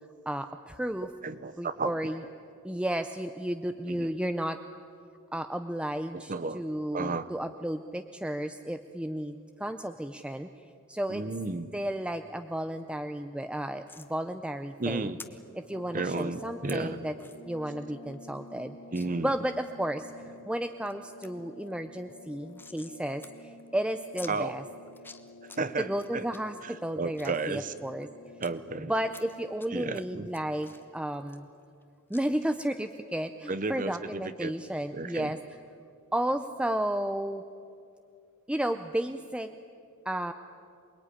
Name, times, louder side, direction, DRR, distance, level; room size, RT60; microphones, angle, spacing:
voice 1, 0.3-1.1 1.6-2.2 2.6-4.6 5.3-10.5 10.9-11.2 11.7-15.1 15.6-17.1 17.4-18.8 19.2-20.1 20.5-24.6 25.8-28.1 28.9-31.5 32.1-35.4 36.1-37.4 38.5-39.5 40.0-40.3, right 1 dB, 5° right, 8 dB, 0.6 m, -33 dB
voice 2, 1.2-1.9 3.9-4.1 6.1-6.6 6.9-7.3 11.1-11.7 14.8-15.2 15.9-17.0 18.9-19.3 24.3-24.6 25.4-26.2 26.6-27.7 28.4-28.9 29.7-30.3 33.5-34.5 34.9-35.4, right 3 dB, 40° right, 12 dB, 0.8 m, -33 dB
sound 1, 13.9-14.1 15.2-15.3 16.0-16.2 16.7-16.8 17.2-17.4 17.8-17.9 18.1-18.2 18.9-19.1 19.6-20.1 20.6-20.9 21.2-21.3 21.6-23.0 23.2-23.3 23.6-23.7 24.2-24.3 24.9-25.6 26.0-26.4 26.9-28.5 29.1-29.7 29.9-31.8 32.1-32.2, left 3 dB, 10° left, 1.2 m, -49 dB
sound 2, 15.6-30.8, left 2 dB, 65° left, 2.1 m, -50 dB
27.5 x 21.0 x 9.9 m, 2.5 s
head